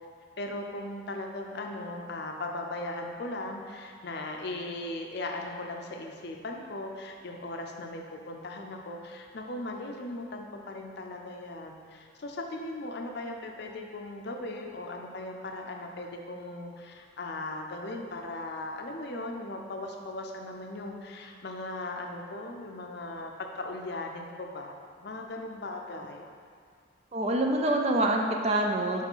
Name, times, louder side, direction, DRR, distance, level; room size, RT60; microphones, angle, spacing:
voice 1, 0.4-26.2, left 2 dB, 55° left, 2 dB, 0.6 m, -38 dB
voice 2, 27.1-29.1, right 1 dB, 35° right, 1 dB, 0.5 m, -26 dB
4.8 x 4.2 x 5.5 m, 2.1 s
head